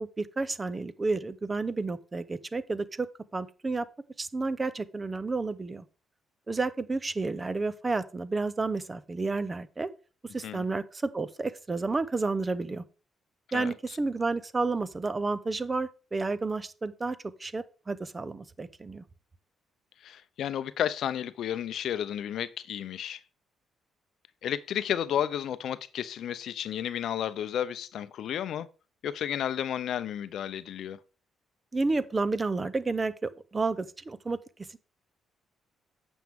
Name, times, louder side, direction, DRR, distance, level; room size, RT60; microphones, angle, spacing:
voice 1, 0.0-3.1 3.3-3.9 4.2-5.8 6.5-9.9 10.3-12.8 13.5-19.0 31.7-34.4, right 3 dB, 25° right, 0.7 m, -31 dB
voice 2, 13.5-14.0 20.0-23.2 24.4-28.7 29.0-31.0, left 10 dB, 70° left, 0.5 m, -32 dB
9.1 x 6.3 x 3.6 m
cardioid pair, 90°, 0 cm